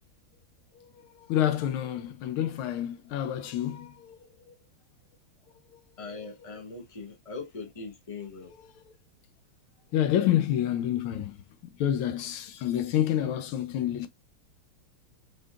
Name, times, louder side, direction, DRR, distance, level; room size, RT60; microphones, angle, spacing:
voice 1, 1.3-4.2 6.1-6.3 9.9-11.3 11.8-14.1, left 11 dB, 80° left, 1.4 m, -28 dB
voice 2, 6.0-8.5, left 4 dB, 20° left, 1.2 m, -40 dB
4.7 x 4.2 x 2.3 m
omnidirectional pair, 2.4 m